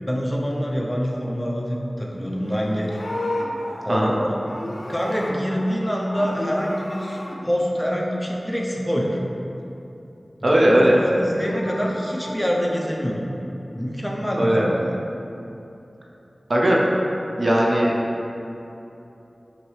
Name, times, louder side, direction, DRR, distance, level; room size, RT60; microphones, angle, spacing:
voice 1, 0.0-2.9 3.9-4.4 4.9-9.2 10.5-13.3 13.7-14.9, equal, 10° left, -2 dB, 0.5 m, -25 dB
Livestock farm animals working animals, 2.4-5.8 6.1-7.4 11.1-12.3, left 1 dB, 65° left, 0.5 m, -33 dB
voice 2, 10.4-11.0 14.4-14.7 16.5-16.8 17.4-17.9, right 1 dB, 50° right, -3 dB, 0.5 m, -18 dB
5.8 x 2.7 x 3.2 m, 2.9 s
wide cardioid pair, 65°, 0 cm